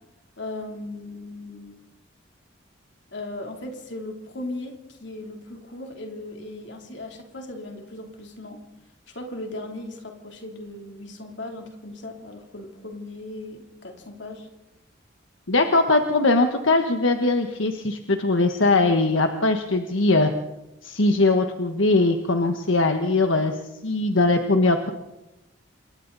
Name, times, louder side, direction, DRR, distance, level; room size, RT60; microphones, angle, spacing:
voice 1, 0.4-1.8 3.1-8.6 9.1-14.5, left 2 dB, 65° left, 2 dB, 3.4 m, -37 dB
voice 2, 15.5-20.3 20.8-24.9, left 2 dB, 80° left, 5 dB, 1.4 m, -21 dB
27.5 x 23.0 x 4.1 m, 0.98 s
head